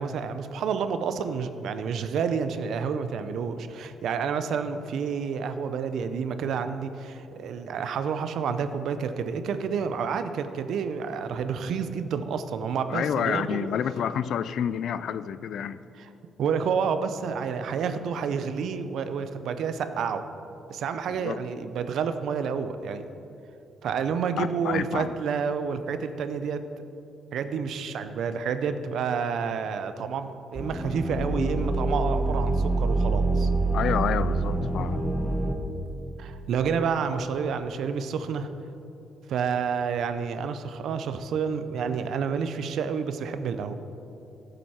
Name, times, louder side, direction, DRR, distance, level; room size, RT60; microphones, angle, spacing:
voice 1, 0.0-13.7 16.0-16.1 16.4-20.2 20.7-23.0 23.8-26.6 27.3-33.5 36.2-38.5 39.3-43.7, right 6 dB, 70° right, 10 dB, 0.7 m, -29 dB
voice 2, 12.9-15.8 21.1-21.4 24.4-25.1 33.7-35.0, left 8 dB, 70° left, 15 dB, 0.4 m, -29 dB
sound 1, 30.6-35.6, right 2 dB, 5° right, 1.0 m, -26 dB
14.0 x 7.9 x 4.3 m, 2.8 s
cardioid pair, 90°, 0 cm